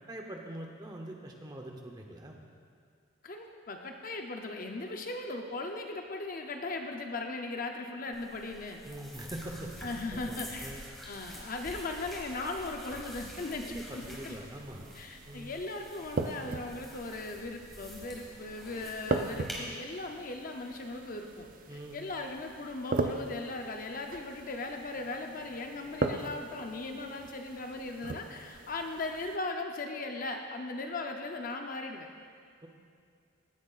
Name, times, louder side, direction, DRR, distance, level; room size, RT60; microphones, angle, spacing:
voice 1, 0.1-2.4 8.8-9.7 10.1-10.8 13.7-14.9 15.3-15.5 21.7-22.0, right 1 dB, 20° right, 1 dB, 0.8 m, -43 dB
voice 2, 3.2-8.8 9.8-10.7 11.0-14.4 14.9-32.1, left 2 dB, 40° left, 3 dB, 0.6 m, -38 dB
sound 1, 8.1-19.6, equal, ahead, 1.6 m, -47 dB
sound 2, 14.0-29.4, right 3 dB, 40° right, 0.4 m, -39 dB
16.0 x 9.3 x 2.5 m, 2.2 s
head